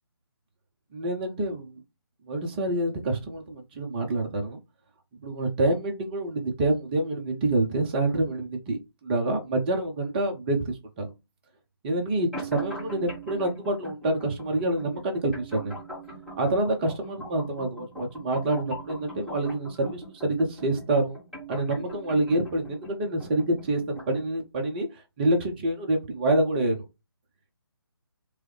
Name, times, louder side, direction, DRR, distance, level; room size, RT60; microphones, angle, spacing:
voice 1, 0.9-1.8 2.3-4.6 5.2-11.1 11.8-15.8 16.4-21.2 21.5-26.8, right 1 dB, 25° right, 4 dB, 0.7 m, -27 dB
sound 1, 12.3-24.3, right 1 dB, ahead, 1.1 m, -41 dB
4.6 x 2.1 x 3.2 m, 0.24 s
figure-of-eight pair, 150°, 14 cm